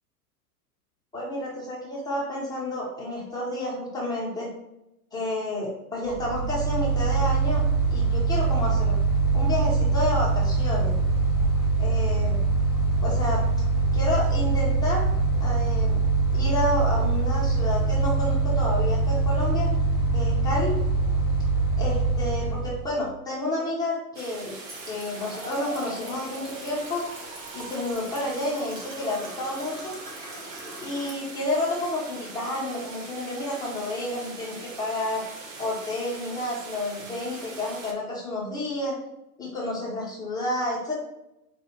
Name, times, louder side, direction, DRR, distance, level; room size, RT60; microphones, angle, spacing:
voice 1, 1.1-4.5 5.1-7.6 7.9-9.0 9.3-11.0 11.8-12.4 13.0-13.4 13.9-15.1 15.4-16.0 16.3-19.7 20.1-20.7 21.8-24.6 24.8-27.0 27.5-29.9 30.8-35.2 35.6-39.0 39.4-40.9, left 1 dB, 10° left, -6 dB, 0.9 m, -30 dB
Mechanical fan, 6.1-23.0, right 3 dB, 5° right, 1.5 m, -23 dB
sound 1, 24.1-37.9, right 3 dB, 25° right, 0.4 m, -42 dB
sound 2, 24.7-31.1, right 1 dB, 80° right, 1.5 m, -42 dB
4.6 x 2.5 x 2.9 m, 0.87 s
hypercardioid pair, 105°, 47 cm